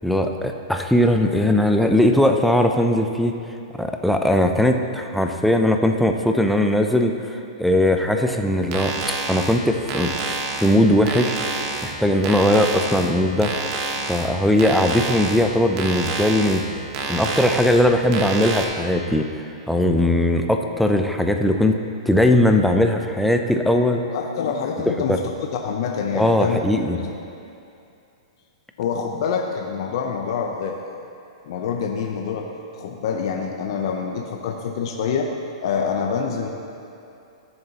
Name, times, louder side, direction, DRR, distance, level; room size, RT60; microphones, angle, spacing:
voice 1, 0.0-3.3 3.8-13.5 14.1-16.8 17.1-24.0 25.1-25.2 26.1-27.0, left 1 dB, ahead, 4 dB, 0.5 m, -19 dB
sound 1, 8.6-18.7, right 3 dB, 40° right, 1.0 m, -29 dB
voice 2, 24.1-26.6 26.9-27.2 28.8-30.9 31.4-32.5 32.7-35.3 35.6-36.5, left 6 dB, 60° left, 2 dB, 0.7 m, -26 dB
14.0 x 6.8 x 2.9 m, 2.6 s
hypercardioid pair, 140°, 3 cm